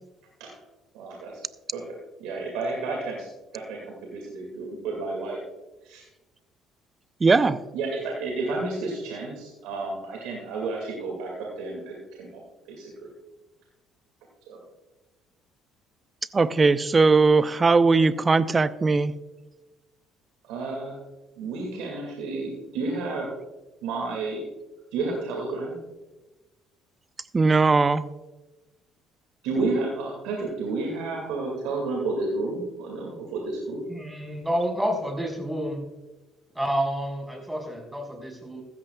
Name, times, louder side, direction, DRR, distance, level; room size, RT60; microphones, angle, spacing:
voice 1, 0.9-1.4 1.7-1.8 2.2-5.4 5.8-6.1 7.7-12.4 12.7-13.1 14.5-14.6 20.5-21.0 21.4-23.3 23.8-24.4 24.9-25.8 29.4-33.8, right 3 dB, 75° right, 0 dB, 2.2 m, -31 dB
voice 2, 7.2-7.6 16.3-19.1 27.3-28.0, right 4 dB, 30° right, 15 dB, 0.6 m, -19 dB
voice 3, 33.9-35.8 36.5-38.6, equal, 10° right, 1 dB, 4.6 m, -29 dB
15.0 x 13.0 x 2.3 m, 1.1 s
hypercardioid pair, 60°, 0 cm